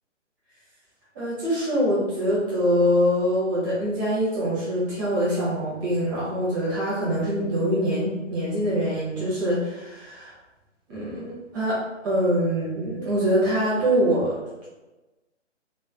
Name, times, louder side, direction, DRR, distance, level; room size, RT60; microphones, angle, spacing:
voice 1, 1.1-10.3 10.9-14.7, equal, 15° right, -8 dB, 0.9 m, -24 dB
3.2 x 3.0 x 2.2 m, 1.1 s
figure-of-eight pair, 150°, 37 cm